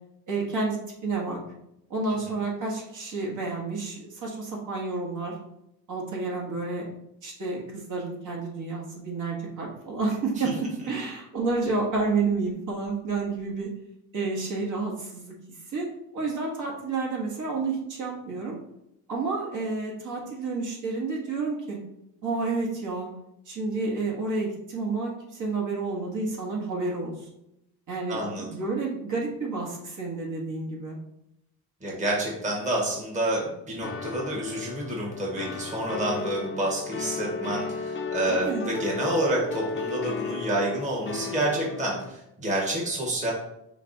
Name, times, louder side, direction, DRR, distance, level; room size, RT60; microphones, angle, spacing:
voice 1, 0.3-1.4 1.9-5.3 5.9-6.9 7.2-13.7 14.1-15.3 15.7-15.9 16.1-18.6 19.1-21.8 22.2-23.1 23.4-27.3 27.9-31.0 38.3-38.7, right 3 dB, 50° right, -2 dB, 1.5 m, -30 dB
voice 2, 28.1-28.5 31.8-43.3, right 1 dB, 20° right, -3 dB, 1.3 m, -28 dB
sound 1, 33.8-42.1, left 4 dB, 30° left, 0.7 m, -34 dB
5.7 x 2.3 x 4.0 m, 0.82 s
cardioid pair, 115°, 39 cm